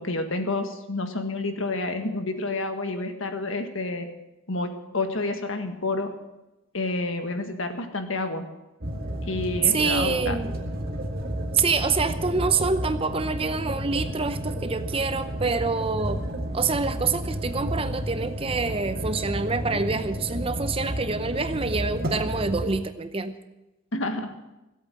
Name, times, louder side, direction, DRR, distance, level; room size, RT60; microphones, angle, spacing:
voice 1, 0.0-4.1 4.5-6.1 6.7-8.4 9.2-10.5 23.9-24.3, left 2 dB, 65° left, 6 dB, 1.7 m, -29 dB
sound 1, 8.8-22.8, right 1 dB, 45° right, 1.9 m, -31 dB
voice 2, 9.6-10.5 11.5-16.2 16.5-23.3, right 4 dB, 25° right, 10 dB, 0.6 m, -26 dB
16.5 x 8.5 x 7.6 m, 0.98 s
head